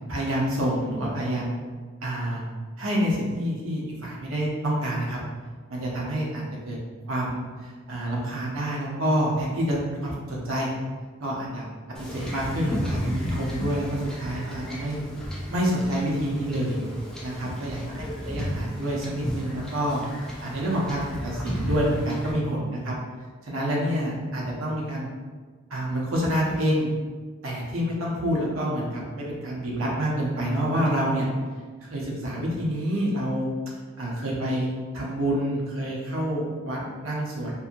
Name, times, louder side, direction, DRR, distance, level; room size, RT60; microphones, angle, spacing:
voice 1, 0.1-1.6 2.0-2.4 2.8-5.2 5.7-6.8 7.1-10.7 11.2-11.6 12.0-15.0 15.5-16.8 17.2-20.0 20.4-22.9 23.4-25.1 25.7-26.9 27.4-31.3 31.8-33.5 34.0-37.5, equal, 75° right, -4 dB, 0.7 m, -27 dB
Wind / Ocean / Boat Water vehicle, 11.9-22.3, equal, 5° left, 0.4 m, -33 dB
2.7 x 2.6 x 2.5 m, 1.5 s
head